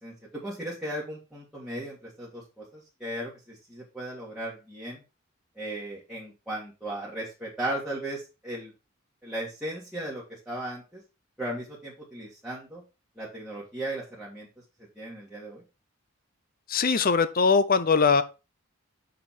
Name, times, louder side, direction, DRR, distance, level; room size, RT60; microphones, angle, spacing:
voice 1, 0.0-5.0 5.6-8.7 9.2-11.0 11.4-12.8 13.2-14.5 15.0-15.6, right 1 dB, 5° right, 1.9 m, -36 dB
voice 2, 16.7-18.2, left 5 dB, 45° left, 0.6 m, -21 dB
6.6 x 5.3 x 4.3 m
head